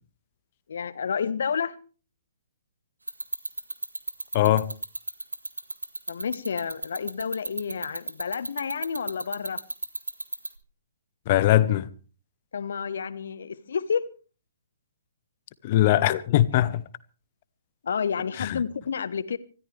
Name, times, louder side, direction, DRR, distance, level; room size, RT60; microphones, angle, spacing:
voice 1, 0.7-1.8 6.1-9.6 12.5-14.0 17.8-19.4, left 6 dB, 60° left, 1.1 m, -30 dB
sound 1, 3.1-10.6, right 2 dB, 80° right, 1.8 m, -31 dB
voice 2, 4.3-4.7 11.3-11.9 15.6-16.8 18.4-18.6, left 13 dB, 35° left, 0.9 m, -21 dB
26.0 x 13.5 x 3.4 m
figure-of-eight pair, 125°, 0 cm